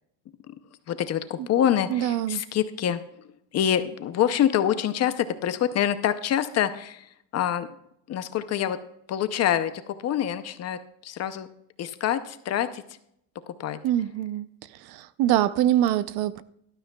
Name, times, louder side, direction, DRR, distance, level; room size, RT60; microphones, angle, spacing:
voice 1, 0.9-3.0 3.5-7.0 7.3-7.7 8.1-8.8 9.1-9.7 10.0-11.5 11.8-12.8 13.6-13.8, left 10 dB, 35° left, 0.6 m, -25 dB
voice 2, 1.9-2.4 13.8-14.5 14.8-16.4, right 12 dB, 55° right, 0.6 m, -24 dB
18.0 x 12.5 x 2.3 m
cardioid pair, 165°, 46 cm